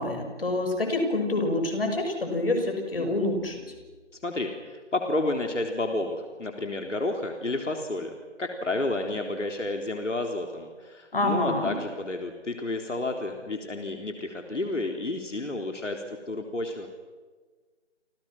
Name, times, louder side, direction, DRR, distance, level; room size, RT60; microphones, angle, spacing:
voice 1, 0.0-3.6 11.1-11.7, left 2 dB, 50° left, 4 dB, 6.6 m, -27 dB
voice 2, 4.2-8.1 8.4-16.9, left 2 dB, 85° left, 3 dB, 3.9 m, -31 dB
29.0 x 27.5 x 6.1 m, 1.4 s
figure-of-eight pair, 175°, 36 cm